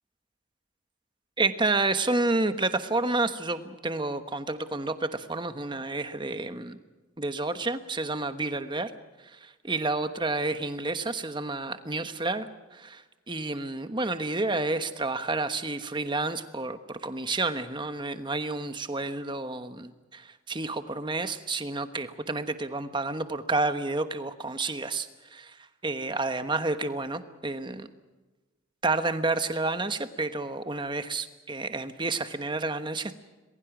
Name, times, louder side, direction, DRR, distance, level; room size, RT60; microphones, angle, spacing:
voice 1, 1.4-6.8 7.2-8.9 9.3-13.0 13.3-25.5 25.8-27.9 28.8-33.1, right 3 dB, 25° right, 9 dB, 1.2 m, -30 dB
27.0 x 21.0 x 6.1 m, 1.2 s
head